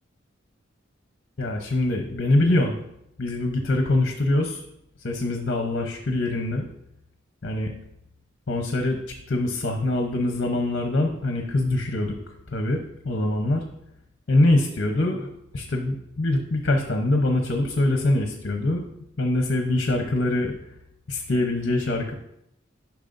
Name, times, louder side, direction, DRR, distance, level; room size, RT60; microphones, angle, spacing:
voice 1, 1.4-2.8 3.2-4.6 5.0-6.6 7.4-7.7 8.5-9.0 9.3-12.1 12.5-12.8 13.0-13.6 14.3-15.3 15.5-18.8 19.2-20.5 21.1-22.1, left 2 dB, 55° left, 3 dB, 0.8 m, -23 dB
10.5 x 5.8 x 2.6 m, 0.78 s
head